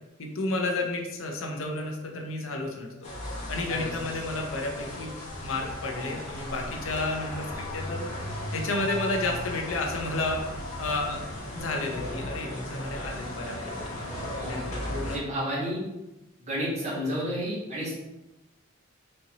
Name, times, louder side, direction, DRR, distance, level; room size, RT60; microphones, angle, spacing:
voice 1, 0.2-3.1 3.5-5.1 5.4-8.1 8.5-10.4 10.8-11.2 11.5-13.8 14.5-15.2, left 2 dB, 70° left, 2 dB, 0.7 m, -31 dB
sound 1, 3.0-15.2, left 1 dB, 35° left, 0.9 m, -36 dB
voice 2, 15.1-15.8 16.4-17.9, equal, 35° right, -7 dB, 1.3 m, -31 dB
4.3 x 2.8 x 2.9 m, 0.96 s
head